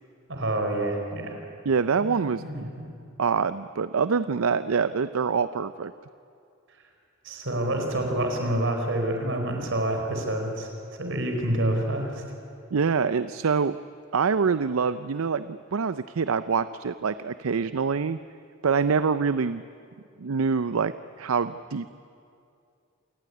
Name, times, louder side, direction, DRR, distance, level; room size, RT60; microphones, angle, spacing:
voice 1, 0.3-1.4 2.0-2.9 7.2-10.7 11.0-12.2, right 1 dB, 65° right, 3 dB, 4.8 m, -28 dB
voice 2, 1.7-2.7 3.2-5.9 12.7-13.8 14.1-18.2 18.6-19.6 20.2-21.9, right 5 dB, 80° right, 14 dB, 0.5 m, -25 dB
27.5 x 18.5 x 9.8 m, 2.5 s
head